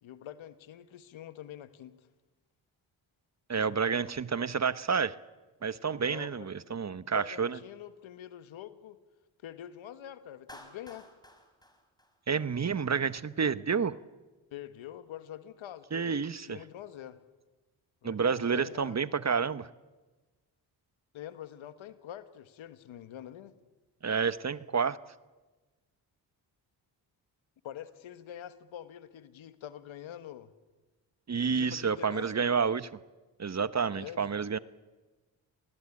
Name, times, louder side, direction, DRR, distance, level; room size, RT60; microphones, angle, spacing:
voice 1, 0.0-2.0 6.0-9.0 9.4-11.1 14.5-17.2 18.0-18.9 21.1-23.5 27.6-30.5 31.5-32.5 33.9-34.4, left 11 dB, 80° left, 12 dB, 1.5 m, -45 dB
voice 2, 3.5-5.2 5.6-7.6 12.3-14.0 15.9-16.6 18.0-19.7 24.0-25.0 31.3-32.9 33.4-34.6, right 6 dB, 35° right, 16 dB, 1.0 m, -29 dB
Clapping, 10.5-12.8, left 1 dB, 10° left, 4.9 m, -53 dB
27.5 x 20.0 x 8.6 m, 1.2 s
supercardioid pair, 50°, 47 cm